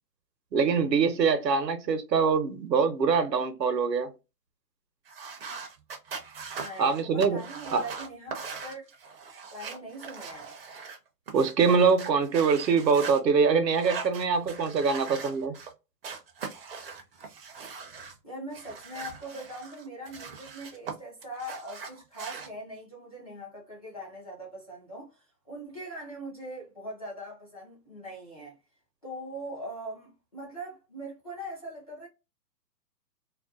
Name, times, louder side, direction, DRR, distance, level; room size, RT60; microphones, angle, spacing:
voice 1, 0.5-4.1 6.8-7.4 7.7-7.8 11.3-15.5, right 5 dB, 80° right, 0.8 m, -24 dB
sound 1, 5.1-11.0 11.3-13.2 13.7-15.7 16.0-18.2 18.5-20.9 21.2-22.5, right 5 dB, 40° right, 0.5 m, -41 dB
voice 2, 6.6-8.9 9.5-10.6 18.2-28.6 29.0-32.1, right 1 dB, 25° left, 0.4 m, -41 dB
2.4 x 2.2 x 2.3 m
hypercardioid pair, 135°, 50 cm